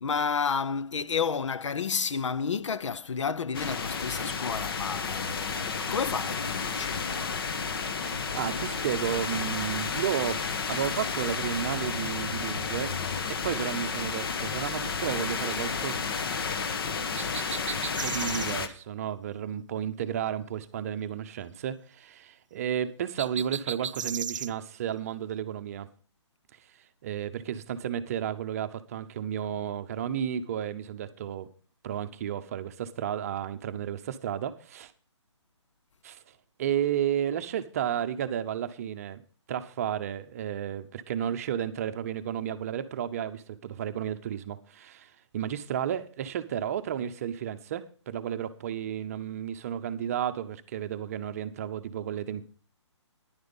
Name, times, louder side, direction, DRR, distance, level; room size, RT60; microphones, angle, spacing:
voice 1, 0.0-7.1, left 6 dB, 75° left, 0.8 m, -31 dB
sound 1, 3.5-18.7, left 5 dB, 50° left, 1.3 m, -32 dB
voice 2, 8.3-12.9 13.3-16.0 18.0-25.9 27.0-31.5 31.8-34.9 36.0-36.2 36.6-39.2 39.5-52.4, right 9 dB, 30° right, 0.7 m, -32 dB
sound 2, 17.2-18.5 23.2-24.5, right 7 dB, 80° right, 0.4 m, -35 dB
10.5 x 9.4 x 5.3 m
hypercardioid pair, 160°, 16 cm